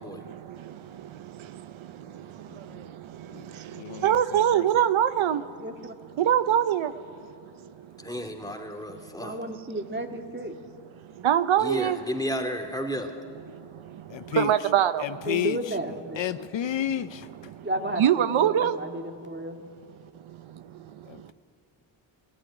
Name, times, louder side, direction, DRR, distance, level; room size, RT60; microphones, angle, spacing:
voice 1, 0.0-5.5 6.2-8.1 11.2-12.0 13.5-15.0 17.5-17.7 18.0-18.8 20.3-21.3, right 10 dB, 80° right, 12 dB, 0.8 m, -26 dB
voice 2, 2.5-2.8 3.3-3.5 3.7-4.6 14.1-14.7 15.0-15.7 16.2-17.3 21.1-21.3, left 11 dB, 65° left, 14 dB, 0.7 m, -32 dB
voice 3, 5.6-5.9 9.2-10.5 15.3-16.2 17.6-19.6, right 1 dB, 20° right, 4 dB, 2.1 m, -33 dB
voice 4, 8.0-9.4 11.6-13.1, equal, 10° left, 3 dB, 2.4 m, -32 dB
19.5 x 14.0 x 9.9 m, 2.3 s
cardioid pair, 75°, 48 cm